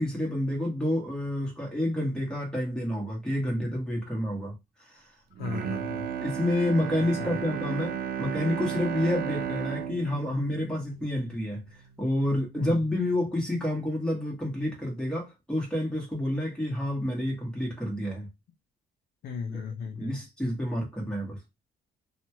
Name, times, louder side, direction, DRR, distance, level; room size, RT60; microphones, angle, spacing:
voice 1, 0.0-4.5 4.9-5.0 6.2-11.6 12.0-18.3 19.5-19.6 20.0-21.4, left 1 dB, 5° left, 1.4 m, -29 dB
Bowed string instrument, 5.3-11.6 12.0-12.1, right 8 dB, 60° right, 0.5 m, -34 dB
voice 2, 5.4-6.1 7.1-7.5 12.6-12.8 19.2-20.2, left 5 dB, 65° left, 0.6 m, -36 dB
2.8 x 2.3 x 2.9 m
cardioid pair, 110°, 17 cm